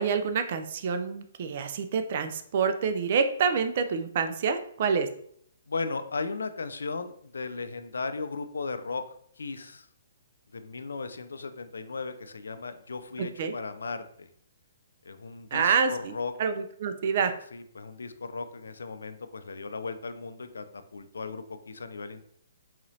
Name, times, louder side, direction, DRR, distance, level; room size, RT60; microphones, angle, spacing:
voice 1, 0.0-5.1 13.2-13.5 15.5-16.1 16.4-17.3, right 6 dB, 50° right, 8 dB, 0.4 m, -27 dB
voice 2, 5.7-9.0 9.4-9.9 10.5-14.3 15.0-16.3 17.5-22.2, left 4 dB, 90° left, 10 dB, 0.3 m, -36 dB
4.0 x 3.0 x 2.7 m, 0.65 s
hypercardioid pair, 150°, 0 cm